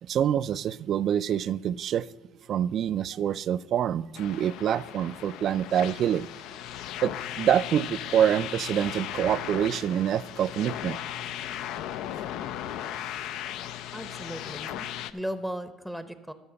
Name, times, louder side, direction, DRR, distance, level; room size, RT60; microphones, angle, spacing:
voice 1, 0.0-2.1 2.5-6.3 7.0-11.0, right 9 dB, 55° right, 18 dB, 0.3 m, -26 dB
sound 1, 4.1-15.1, left 11 dB, 70° left, 0.4 m, -37 dB
voice 2, 13.9-16.3, equal, ahead, 11 dB, 0.7 m, -36 dB
13.0 x 4.7 x 6.9 m, 1.2 s
supercardioid pair, 100°, 0 cm